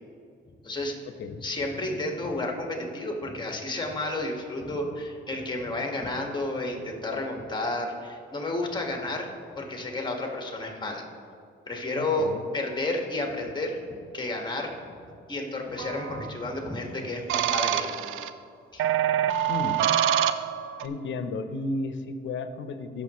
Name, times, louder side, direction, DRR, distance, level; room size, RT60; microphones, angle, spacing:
voice 1, 0.6-1.0 1.4-9.3 9.6-11.1 11.7-13.8 14.1-14.7 15.3-17.9 18.7-18.9, left 2 dB, 20° left, 1 dB, 1.7 m, -31 dB
voice 2, 12.0-12.4 19.5-19.8 20.8-23.0, left 3 dB, 70° left, 10 dB, 0.8 m, -33 dB
sound 1, 15.8-16.3 17.3-18.3 18.8-20.8, right 10 dB, 85° right, 0.5 m, -26 dB
15.5 x 6.6 x 3.1 m, 2.3 s
cardioid pair, 90°, 20 cm